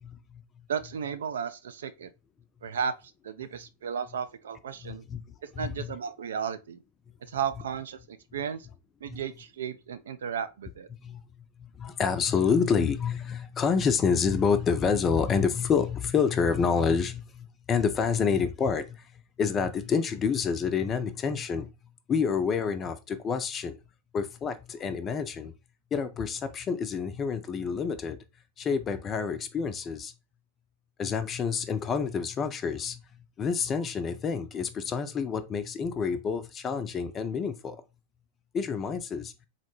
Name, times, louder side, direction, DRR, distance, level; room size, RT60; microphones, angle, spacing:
voice 1, 0.0-0.4 4.8-5.2 5.5-5.9 9.1-9.2 11.0-21.7 22.1-23.8 24.1-25.5 25.9-28.2 28.6-30.1 31.0-33.0 33.4-37.8 38.5-39.3, left 6 dB, 25° left, 0.4 m, -28 dB
voice 2, 0.7-2.1 2.6-2.9 3.2-5.0 5.4-6.8 7.3-8.7 9.0-10.9, right 7 dB, 65° right, 0.3 m, -34 dB
4.0 x 2.1 x 2.9 m
figure-of-eight pair, 90°, 0 cm